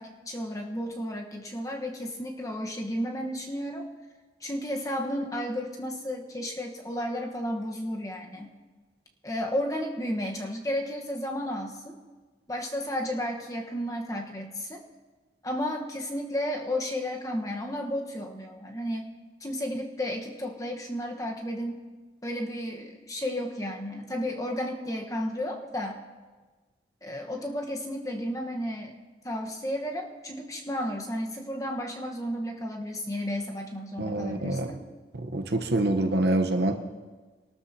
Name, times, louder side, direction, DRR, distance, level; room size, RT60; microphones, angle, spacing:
voice 1, 0.0-3.9 4.4-8.5 9.2-12.0 12.5-14.8 15.4-19.1 19.4-21.8 22.2-26.0 27.0-28.9 29.2-34.8, equal, 20° left, 1 dB, 1.2 m, -33 dB
voice 2, 34.0-34.7 35.1-36.8, right 1 dB, 70° right, 5 dB, 1.0 m, -26 dB
23.5 x 12.5 x 2.8 m, 1.3 s
head